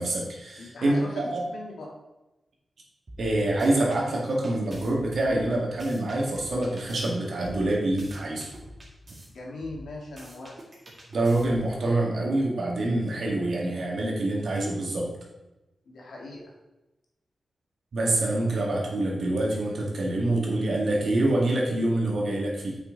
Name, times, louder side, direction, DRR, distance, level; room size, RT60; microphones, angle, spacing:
voice 1, 0.0-1.4 3.2-8.5 11.1-15.1 17.9-22.8, right 1 dB, 65° right, -2 dB, 2.1 m, -26 dB
voice 2, 0.6-1.9 9.3-10.6 15.9-16.5, left 2 dB, 90° left, -2 dB, 2.1 m, -40 dB
sound 1, 3.1-4.0 4.4-7.1 7.4-9.3 9.6-11.8, equal, 30° right, 2.1 m, -46 dB
8.1 x 5.8 x 4.0 m, 1.0 s
wide cardioid pair, 115°, 0 cm